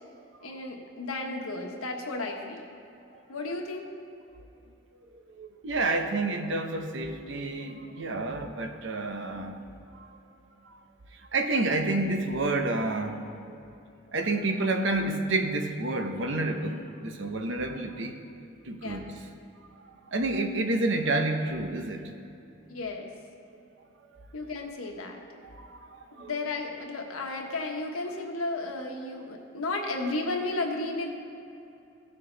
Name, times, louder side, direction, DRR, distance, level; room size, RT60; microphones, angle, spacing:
voice 1, 0.4-2.7 3.3-3.9 18.8-19.1 22.7-23.1 24.3-25.2 26.3-31.1, left 2 dB, 90° left, 1 dB, 1.3 m, -33 dB
voice 2, 5.1-9.6 9.9-10.1 11.3-13.2 14.1-18.2 18.6-19.1 20.1-22.1 25.4-26.3, right 2 dB, 60° right, 5 dB, 0.8 m, -29 dB
16.5 x 6.7 x 3.9 m, 2.8 s
head